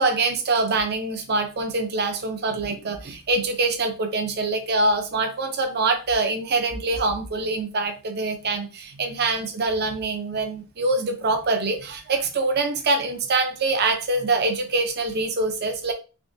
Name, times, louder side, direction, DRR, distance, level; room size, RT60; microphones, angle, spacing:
voice 1, 0.0-15.9, right 3 dB, 50° right, 0.6 m, -24 dB
3.5 x 2.6 x 2.6 m
head